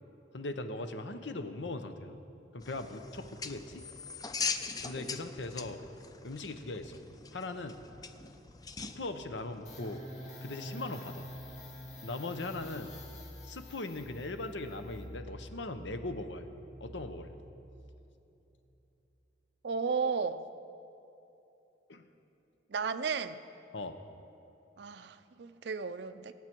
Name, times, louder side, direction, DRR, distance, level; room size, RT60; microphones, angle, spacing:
voice 1, 0.3-2.2 2.5-3.8 4.8-5.8 6.2-7.0 7.3-7.8 8.8-10.0 10.4-11.3 12.0-12.9 13.4-16.5 16.8-17.4 21.9-22.1 23.7-24.0, left 2 dB, 85° left, 8 dB, 0.9 m, -39 dB
sound 1, 2.6-10.0, left 5 dB, 20° left, 0.5 m, -41 dB
sound 2, 9.7-18.1, equal, 40° left, 1.9 m, -47 dB
voice 2, 19.6-20.5 22.7-23.4 24.8-26.3, right 5 dB, 65° right, 11 dB, 0.5 m, -34 dB
22.5 x 8.6 x 4.6 m, 2.9 s
head